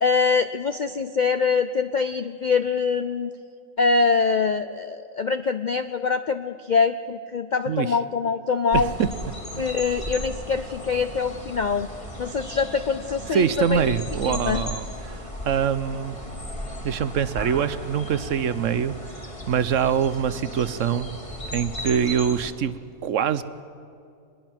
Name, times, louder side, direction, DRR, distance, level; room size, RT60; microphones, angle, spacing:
voice 1, 0.0-3.3 3.8-8.9 9.6-11.9 12.2-13.8 14.2-14.6, left 5 dB, 65° left, 10 dB, 0.4 m, -24 dB
voice 2, 7.7-8.0 8.7-9.1 9.5-9.6 13.3-16.2 16.8-18.9 19.5-21.1 21.5-22.8 23.0-23.4, right 8 dB, 65° right, 14 dB, 1.0 m, -24 dB
sound 1, 8.7-22.5, equal, 20° left, 2.1 m, -36 dB
24.0 x 20.5 x 6.0 m, 2.4 s
omnidirectional pair, 1.5 m